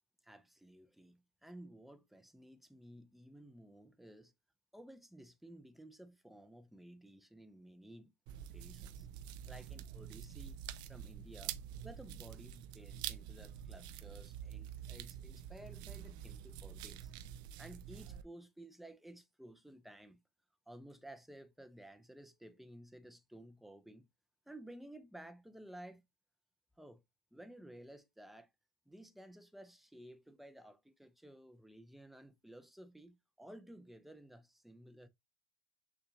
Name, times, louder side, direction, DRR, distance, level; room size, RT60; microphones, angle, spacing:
voice 1, 0.2-4.3 4.7-8.1 8.5-9.1 9.4-10.6 10.9-11.6 11.8-17.1 17.6-20.2 20.7-24.1 24.5-26.0 26.8-27.0 27.3-28.5 28.9-35.1, right 1 dB, ahead, 0.6 m, -55 dB
sound 1, 8.3-18.2, right 10 dB, 65° right, 0.5 m, -47 dB
6.6 x 2.5 x 2.8 m
supercardioid pair, 100°, 8 cm